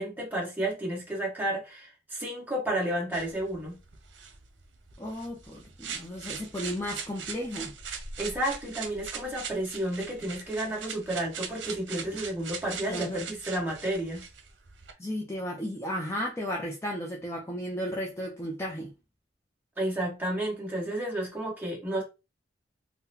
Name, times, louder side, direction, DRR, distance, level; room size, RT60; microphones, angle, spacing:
voice 1, 0.0-3.8 8.2-14.3 19.8-22.0, right 1 dB, 10° right, 1.2 m, -31 dB
sound 1, 3.1-14.9, right 6 dB, 85° right, 0.7 m, -41 dB
voice 2, 5.0-7.7 12.9-13.2 15.0-18.9, equal, 15° left, 0.5 m, -34 dB
3.7 x 2.2 x 2.7 m
head